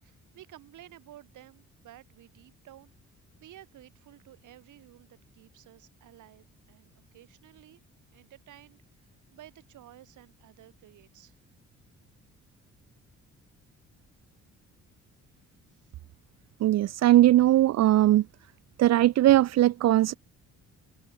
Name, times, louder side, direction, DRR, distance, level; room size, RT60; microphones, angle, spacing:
voice 1, 0.0-2.9 3.4-7.8 8.1-11.4 15.7-15.9, right 13 dB, 80° right, 8.0 m, -53 dB
voice 2, 16.6-18.2 18.8-20.2, right 14 dB, 60° right, 0.5 m, -20 dB
cardioid pair, 90°, 30 cm